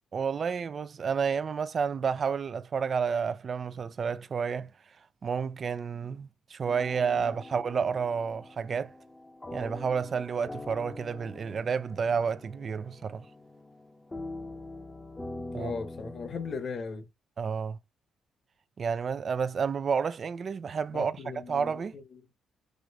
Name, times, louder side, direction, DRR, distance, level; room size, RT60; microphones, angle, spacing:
voice 1, 0.1-4.7 5.2-8.9 9.5-13.2 15.5-15.7 17.4-17.8 18.8-21.1 21.5-21.9, right 6 dB, 45° right, 0.5 m, -30 dB
sound 1, 6.7-16.6, left 2 dB, 20° left, 0.8 m, -44 dB
voice 2, 15.5-17.1 20.9-22.2, left 5 dB, 50° left, 1.3 m, -38 dB
6.3 x 3.1 x 2.4 m
cardioid pair, 90°, 0 cm